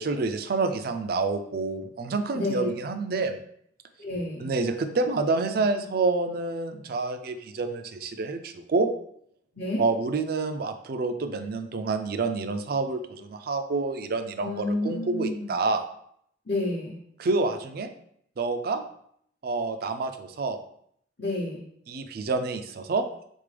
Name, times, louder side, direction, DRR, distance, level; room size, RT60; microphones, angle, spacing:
voice 1, 0.0-3.4 4.4-8.9 9.8-15.8 17.2-17.9 18.4-18.8 19.4-20.6 21.9-23.2, right 3 dB, 55° right, 9 dB, 0.4 m, -28 dB
voice 2, 4.0-4.5 9.5-9.8 14.4-15.5 16.5-17.0 21.2-21.6, left 2 dB, 50° left, -4 dB, 0.8 m, -30 dB
4.1 x 3.5 x 3.3 m, 0.70 s
head